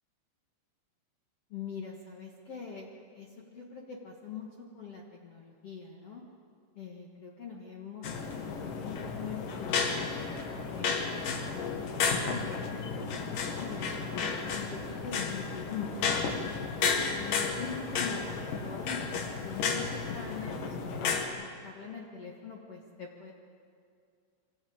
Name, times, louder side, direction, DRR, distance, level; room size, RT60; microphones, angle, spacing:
voice 1, 1.5-6.2 6.7-10.2 10.7-14.0 14.5-16.5 17.0-18.3 18.6-23.3, left 5 dB, 80° left, -1 dB, 1.3 m, -43 dB
sound 1, 8.0-21.2, left 5 dB, 60° left, 2.6 m, -33 dB
24.5 x 17.0 x 8.8 m, 2.3 s
omnidirectional pair, 5.5 m